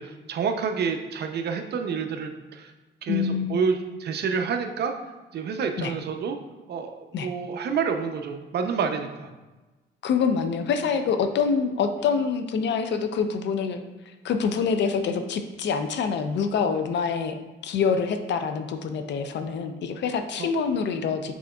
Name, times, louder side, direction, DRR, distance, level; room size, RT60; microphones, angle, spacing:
voice 1, 0.0-2.7 3.0-4.9 5.3-6.4 6.7-9.3 20.4-20.5, right 6 dB, 55° right, 6 dB, 0.5 m, -28 dB
voice 2, 3.1-3.6 5.8-5.9 7.1-7.3 10.0-13.8 14.2-21.3, left 6 dB, 65° left, 8 dB, 0.5 m, -26 dB
6.1 x 3.7 x 2.3 m, 1.2 s
cardioid pair, 90°, 20 cm